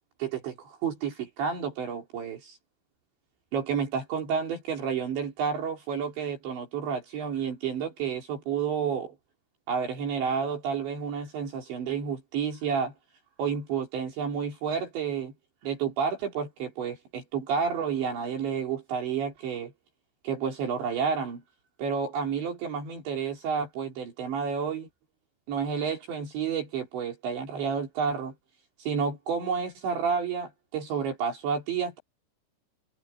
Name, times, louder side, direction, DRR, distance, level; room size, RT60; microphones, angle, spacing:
voice 1, 0.2-2.6 3.5-9.2 9.7-12.9 13.4-15.3 15.6-19.7 20.2-21.4 21.8-24.9 25.5-28.3 28.8-32.0, right 6 dB, 65° right, 5.9 m, -30 dB
omnidirectional pair, 5.7 m